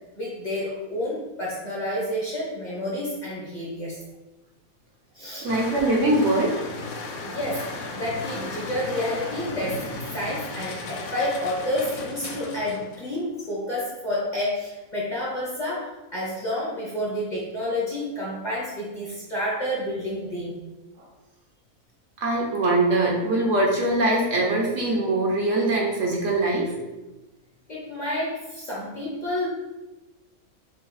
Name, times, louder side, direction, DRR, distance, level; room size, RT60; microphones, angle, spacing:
voice 1, 0.2-4.0 5.2-5.5 7.2-7.7 7.9-20.6 27.7-29.5, left 1 dB, 35° left, -6 dB, 0.9 m, -29 dB
voice 2, 5.4-6.6 22.2-26.8, right 2 dB, 60° right, -1 dB, 1.0 m, -22 dB
sound 1, 5.5-13.1, left 3 dB, 65° left, 0.8 m, -35 dB
6.2 x 2.2 x 3.1 m, 1.1 s
omnidirectional pair, 1.6 m